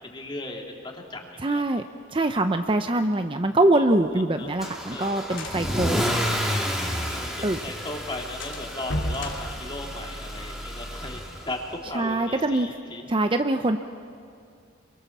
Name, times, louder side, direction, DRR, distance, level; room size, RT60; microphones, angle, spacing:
voice 1, 0.0-1.6 4.4-4.5 4.9-5.2 7.0-13.1, left 2 dB, 25° left, 0 dB, 2.9 m, -36 dB
voice 2, 1.4-1.8 2.1-6.1 7.4-7.6 11.9-12.7 13.1-13.8, right 2 dB, 25° right, 7 dB, 0.6 m, -23 dB
sound 1, 3.9-7.3 7.6-7.7 8.0-8.1 8.4-10.5, left 1 dB, 70° left, 2.9 m, -35 dB
Car / Engine starting / Accelerating revving vroom, 4.6-11.7, equal, ahead, 2.6 m, -30 dB
28.0 x 23.0 x 7.3 m, 2.4 s
head